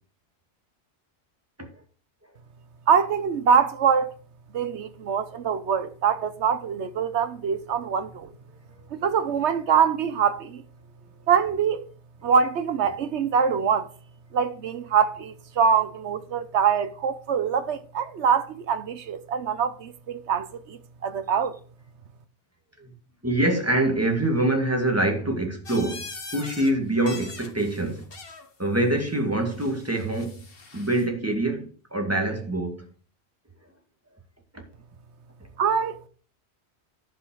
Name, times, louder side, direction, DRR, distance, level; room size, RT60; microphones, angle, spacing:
voice 1, 2.9-4.1 4.5-8.3 8.9-10.6 11.3-11.8 12.2-13.9 14.3-21.5 35.6-36.1, right 7 dB, 85° right, 1.2 m, -24 dB
voice 2, 23.2-28.1 28.6-30.4 30.7-32.9 34.5-34.6, right 1 dB, 15° right, 2.2 m, -25 dB
sound 1, 25.7-26.7 27.0-28.5 29.5-31.1, left 3 dB, 60° left, 1.7 m, -42 dB
11.0 x 5.4 x 6.3 m
omnidirectional pair, 1.1 m